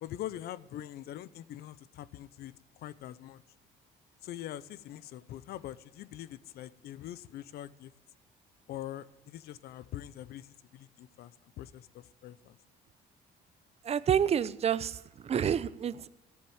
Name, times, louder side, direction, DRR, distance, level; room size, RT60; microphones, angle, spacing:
voice 1, 0.0-3.4 4.2-7.9 8.7-12.6, left 12 dB, 70° left, 0.7 m, -43 dB
voice 2, 13.8-16.1, right 8 dB, 40° right, 0.6 m, -29 dB
14.0 x 7.3 x 8.8 m
cardioid pair, 110°, 17 cm